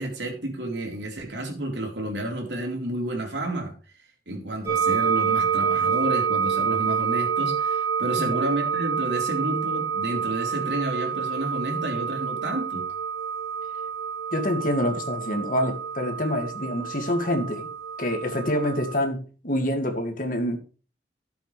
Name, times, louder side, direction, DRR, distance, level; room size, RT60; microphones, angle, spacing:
voice 1, 0.0-3.7 4.3-12.9, right 1 dB, 80° right, 2 dB, 3.8 m, -30 dB
sound 1, 4.7-18.9, right 7 dB, 15° right, 3.9 m, -27 dB
voice 2, 14.3-17.7 18.0-20.6, equal, 50° left, 4 dB, 2.3 m, -26 dB
14.5 x 7.8 x 3.3 m, 0.36 s
head